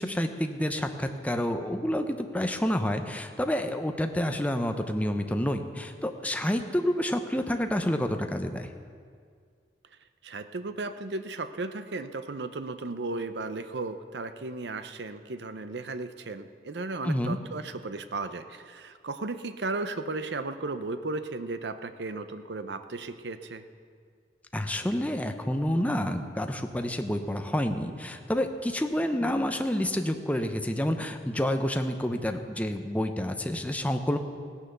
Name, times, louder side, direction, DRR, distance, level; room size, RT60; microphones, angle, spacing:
voice 1, 0.0-8.7 17.0-17.4 24.5-34.2, left 1 dB, 10° left, 6 dB, 0.8 m, -29 dB
voice 2, 10.2-23.6, right 3 dB, 70° right, 10 dB, 0.7 m, -35 dB
16.5 x 9.9 x 6.8 m, 2.1 s
head